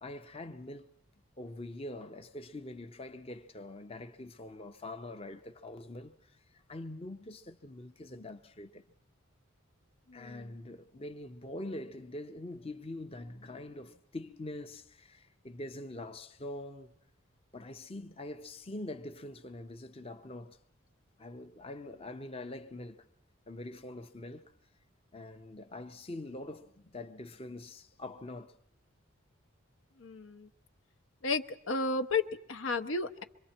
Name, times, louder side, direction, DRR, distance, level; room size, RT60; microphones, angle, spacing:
voice 1, 0.0-0.9 1.4-8.8 10.1-16.9 17.5-20.6 21.2-23.1 23.5-24.6 25.1-28.6, left 1 dB, 30° left, 0.8 m, -44 dB
voice 2, 10.1-10.5 30.0-30.5 31.2-33.2, left 4 dB, 70° left, 0.9 m, -33 dB
26.0 x 23.5 x 4.4 m
head